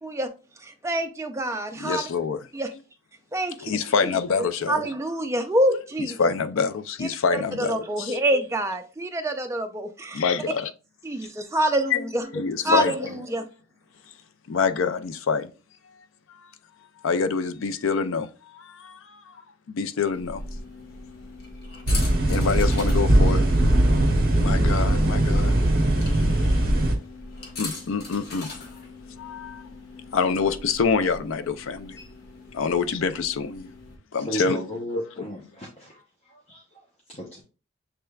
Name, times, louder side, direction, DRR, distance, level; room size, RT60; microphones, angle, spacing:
voice 1, 0.0-0.3 0.6-2.1 2.5-2.7 3.3-3.7 4.7-6.2 7.6-10.2 11.0-12.2 12.6-13.5, right 1 dB, 15° right, 0.4 m, -26 dB
voice 2, 1.8-2.5 3.6-4.9 6.0-8.2 10.1-10.7 11.9-13.1 14.5-15.5 16.3-16.5 17.0-19.4 19.7-20.4 22.3-23.4 24.3-25.6 26.0-26.6 27.6-28.5 29.2-29.7 30.1-32.0 32.5-33.7 34.1-34.6 34.9-35.0, left 5 dB, 70° left, 0.4 m, -26 dB
sound 1, 20.1-34.0, left 2 dB, 45° left, 1.1 m, -40 dB
sound 2, 21.9-26.9, right 1 dB, 45° right, 0.8 m, -20 dB
voice 3, 34.2-36.0 36.5-36.6 37.1-37.4, equal, 30° left, 0.7 m, -35 dB
6.7 x 3.2 x 2.3 m
head